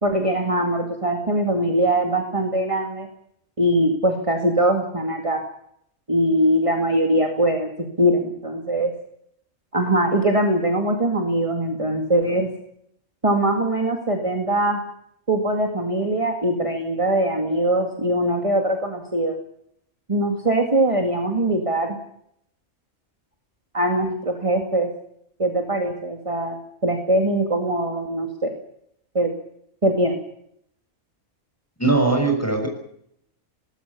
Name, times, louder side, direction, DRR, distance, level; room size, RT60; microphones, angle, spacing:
voice 1, 0.0-3.1 3.6-5.4 6.1-7.7 8.0-8.9 9.7-12.5 13.2-14.8 15.3-19.4 20.1-22.0 23.7-24.9 25.4-28.5 29.1-29.3 29.8-30.2, right 1 dB, 20° right, 3 dB, 2.2 m, -22 dB
voice 2, 31.8-32.7, right 3 dB, 10° left, 3 dB, 6.5 m, -20 dB
22.0 x 19.5 x 7.0 m, 0.72 s
omnidirectional pair, 1.5 m